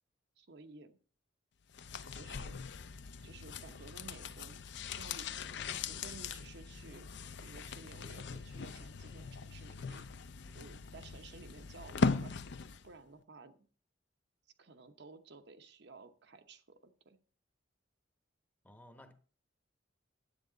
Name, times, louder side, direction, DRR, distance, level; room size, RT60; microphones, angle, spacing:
voice 1, 0.4-1.0 2.1-2.6 3.2-4.6 5.0-7.1 7.4-10.1 10.5-12.3 12.8-13.6 14.6-17.2, right 3 dB, 60° right, 0.9 m, -54 dB
sound 1, 1.7-12.9 13.2-13.3, left 4 dB, 65° left, 0.5 m, -40 dB
voice 2, 18.6-19.1, left 1 dB, 10° left, 0.9 m, -56 dB
10.0 x 8.4 x 3.9 m
head